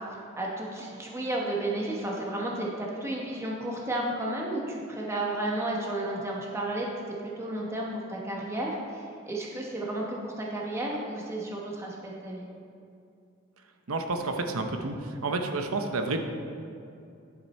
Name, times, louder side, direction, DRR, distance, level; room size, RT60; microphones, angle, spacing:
voice 1, 0.4-6.9 7.2-12.5, right 1 dB, 15° right, -3 dB, 1.0 m, -32 dB
voice 2, 13.9-16.2, right 3 dB, 85° right, 5 dB, 0.8 m, -30 dB
10.5 x 5.9 x 4.3 m, 2.6 s
head